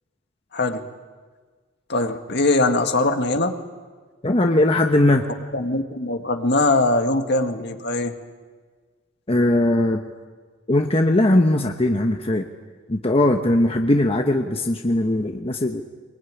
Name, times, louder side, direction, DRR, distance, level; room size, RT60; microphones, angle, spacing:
voice 1, 0.5-0.8 1.9-3.6 5.5-8.1, left 2 dB, 55° left, 6 dB, 1.9 m, -21 dB
voice 2, 4.2-5.2 9.3-10.0 10.7-12.5 12.9-15.8, left 1 dB, 30° left, 4 dB, 1.1 m, -19 dB
23.5 x 21.5 x 9.7 m, 1.5 s
head